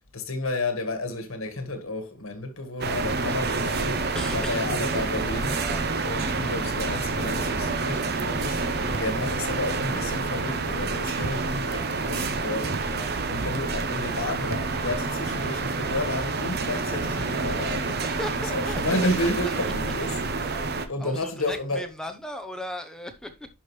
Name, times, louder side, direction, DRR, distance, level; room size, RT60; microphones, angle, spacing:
voice 1, 0.1-5.6 6.0-12.9 13.3-18.0 18.5-20.2 20.6-21.8, left 2 dB, 90° left, 1.7 m, -31 dB
sound 1, 2.8-20.9, right 3 dB, 50° right, 0.9 m, -28 dB
voice 2, 4.1-4.7 5.4-5.8 8.8-9.0 12.8-13.1 18.0-18.8 19.2-19.9 20.5-23.5, left 1 dB, 5° left, 0.9 m, -37 dB
sound 2, 8.9-9.1 9.7-9.8 10.3-10.5 11.2-11.4 12.7-12.9 14.5-14.7, right 2 dB, 85° right, 0.8 m, -36 dB
11.0 x 5.1 x 3.2 m
head